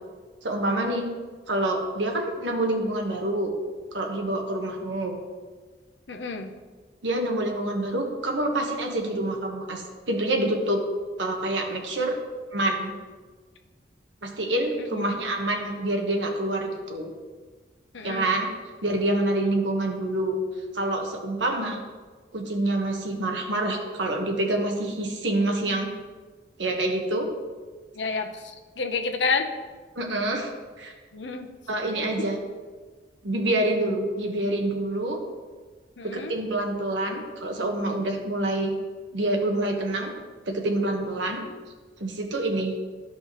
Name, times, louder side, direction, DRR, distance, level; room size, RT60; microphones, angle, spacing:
voice 1, 0.4-1.1 1.5-3.5 3.9-5.2 7.0-10.8 11.2-12.1 12.5-12.9 14.2-17.1 18.0-18.5 18.8-20.4 20.7-21.8 22.3-25.9 26.6-27.3 30.0-30.5 30.8-30.9 31.7-32.4 33.2-35.2 36.0-38.7 39.1-40.1 40.5-41.4 42.0-42.7, right 1 dB, 90° right, 2 dB, 1.2 m, -27 dB
voice 2, 6.1-6.5 14.8-15.0 17.9-18.3 27.9-29.5 31.1-31.5 32.2-32.3 36.0-36.3, left 4 dB, 85° left, 4 dB, 0.8 m, -29 dB
13.5 x 5.3 x 3.1 m, 1.4 s
head